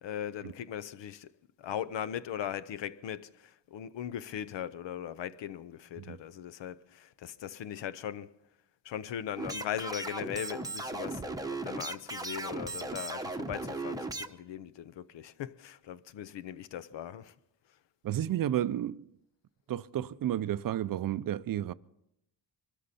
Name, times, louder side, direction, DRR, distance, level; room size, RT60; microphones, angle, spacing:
voice 1, 0.0-1.3 1.6-8.3 8.8-17.3, left 10 dB, 75° left, 0.8 m, -39 dB
sound 1, 9.4-14.3, right 2 dB, 10° right, 0.8 m, -37 dB
voice 2, 18.0-19.0 19.7-21.7, right 11 dB, 50° right, 0.5 m, -32 dB
24.0 x 13.0 x 4.2 m
cardioid pair, 115°, 44 cm